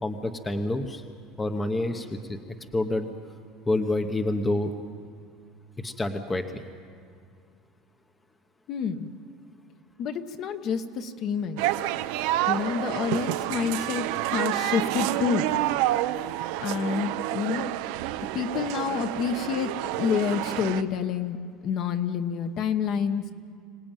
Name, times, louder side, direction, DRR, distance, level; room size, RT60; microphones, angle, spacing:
voice 1, 0.0-1.0 1.4-2.4 2.7-3.1 3.7-4.7 5.8-6.6, left 2 dB, 10° left, 6 dB, 0.9 m, -28 dB
voice 2, 8.7-9.1 10.0-11.7 12.5-15.5 16.6-17.7 18.3-21.4 21.6-23.2, left 6 dB, 40° left, 8 dB, 1.1 m, -28 dB
sound 1, 11.6-20.8, right 15 dB, 65° right, 0.8 m, -29 dB
25.5 x 18.5 x 9.1 m, 2.3 s
cardioid pair, 170°, 0 cm